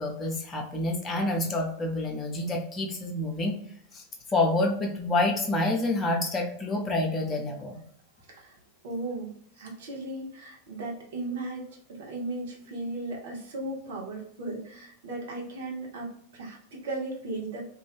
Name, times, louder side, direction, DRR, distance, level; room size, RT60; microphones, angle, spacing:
voice 1, 0.0-3.6 3.9-4.0 4.3-7.8, left 2 dB, 20° left, 1 dB, 0.7 m, -28 dB
voice 2, 8.8-9.3 9.6-11.6 11.9-17.7, right 2 dB, 55° right, -1 dB, 0.9 m, -36 dB
2.6 x 2.5 x 3.3 m, 0.68 s
figure-of-eight pair, 90°, 0 cm